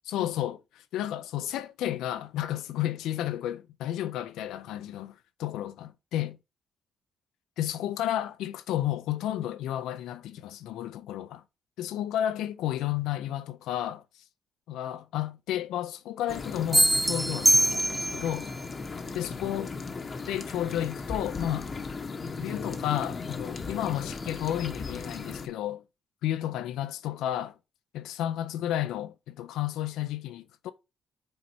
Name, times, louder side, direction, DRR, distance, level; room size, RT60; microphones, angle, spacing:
voice 1, 0.1-0.6 0.9-5.1 5.4-6.4 7.6-11.4 11.8-14.0 14.7-18.5 19.1-19.7 20.3-21.7 22.4-25.8 26.2-27.5 27.9-30.7, left 12 dB, 90° left, 0.6 m, -32 dB
sound 1, 16.3-25.5, left 4 dB, 35° left, 0.9 m, -37 dB
sound 2, 16.7-18.4, right 1 dB, 10° right, 0.3 m, -23 dB
6.4 x 4.1 x 4.3 m
cardioid pair, 90°, 0 cm